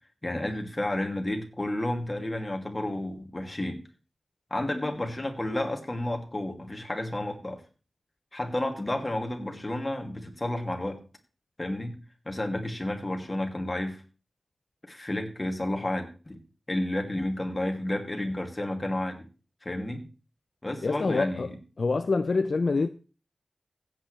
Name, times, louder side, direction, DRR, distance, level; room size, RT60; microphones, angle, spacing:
voice 1, 0.2-3.8 4.5-7.6 8.3-11.0 11.6-12.0 12.3-14.0 14.9-16.4 16.7-19.3 19.6-20.1 20.6-21.5, left 1 dB, 25° left, 2.5 m, -31 dB
voice 2, 20.8-21.5 21.8-22.9, left 3 dB, 65° left, 0.5 m, -26 dB
15.5 x 8.8 x 3.3 m
wide cardioid pair, 75°, 0 cm